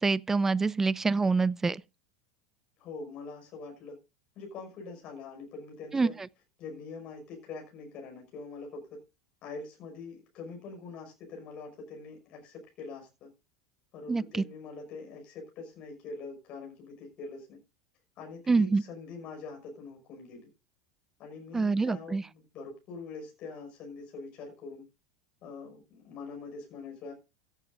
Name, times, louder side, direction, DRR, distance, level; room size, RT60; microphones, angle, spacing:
voice 1, 0.0-1.8 5.9-6.1 14.1-14.4 18.5-18.8 21.5-22.2, right 4 dB, 15° right, 0.5 m, -26 dB
voice 2, 2.8-4.0 4.4-6.2 6.6-9.0 9.4-13.3 13.9-17.6 18.2-20.5 21.2-24.9 25.4-27.1, left 4 dB, 40° left, 5.8 m, -44 dB
15.5 x 14.0 x 2.6 m
figure-of-eight pair, 80°, 3 cm